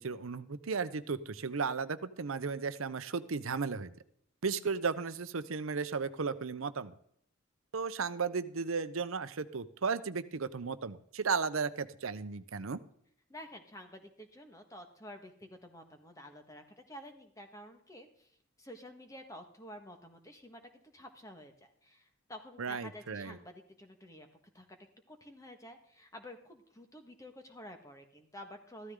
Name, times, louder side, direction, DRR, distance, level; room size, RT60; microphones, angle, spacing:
voice 1, 0.0-3.9 4.4-6.9 7.7-12.8 22.6-23.4, right 5 dB, 80° right, 13 dB, 0.7 m, -35 dB
voice 2, 13.3-18.3 18.6-24.3 24.5-24.8 25.1-28.9, equal, 15° left, 5 dB, 1.5 m, -50 dB
14.5 x 13.0 x 3.7 m, 0.66 s
head